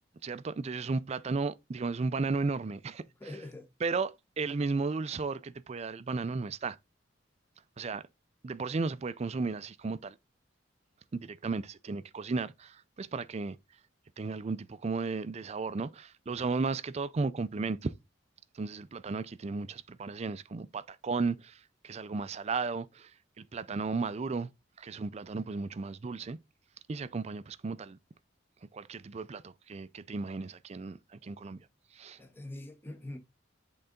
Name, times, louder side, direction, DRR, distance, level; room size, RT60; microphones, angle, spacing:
voice 1, 0.2-3.0 3.8-6.8 7.8-8.1 8.4-10.1 11.1-13.6 14.2-17.9 18.5-23.1 23.4-24.5 24.8-26.4 26.9-28.0 28.7-31.6 31.9-32.2, right 4 dB, 35° right, 0.4 m, -34 dB
voice 2, 3.1-3.7 32.2-33.2, left 1 dB, 10° left, 1.0 m, -44 dB
7.9 x 3.8 x 3.7 m
head